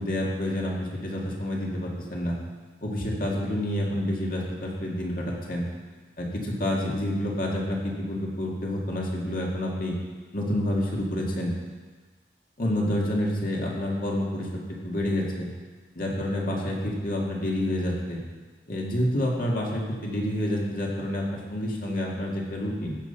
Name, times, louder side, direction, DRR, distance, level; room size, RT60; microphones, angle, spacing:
voice 1, 0.0-2.4 2.8-5.7 6.2-9.9 10.3-11.5 12.6-14.5 14.8-15.5 16.0-18.2 18.7-23.0, left 1 dB, 50° left, -2 dB, 2.0 m, -28 dB
15.0 x 5.7 x 5.6 m, 1.4 s
head